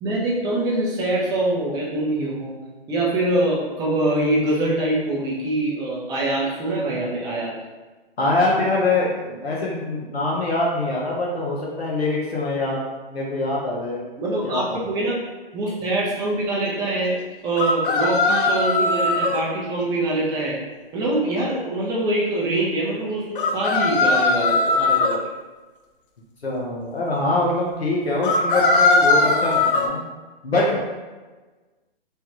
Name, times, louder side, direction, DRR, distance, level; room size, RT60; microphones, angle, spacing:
voice 1, 0.0-2.5 2.9-7.6 14.2-15.2 15.5-17.2 17.4-20.6 20.9-25.2, right 2 dB, 15° right, -4 dB, 0.5 m, -24 dB
voice 2, 8.2-12.8 13.1-14.0 14.4-14.8 26.4-30.0 30.4-30.8, left 2 dB, 90° left, -4 dB, 0.8 m, -24 dB
sound 1, 17.6-19.4 23.4-25.2 28.2-29.9, left 3 dB, 60° left, 0.5 m, -19 dB
3.2 x 2.2 x 2.9 m, 1.3 s
figure-of-eight pair, 125°, 30 cm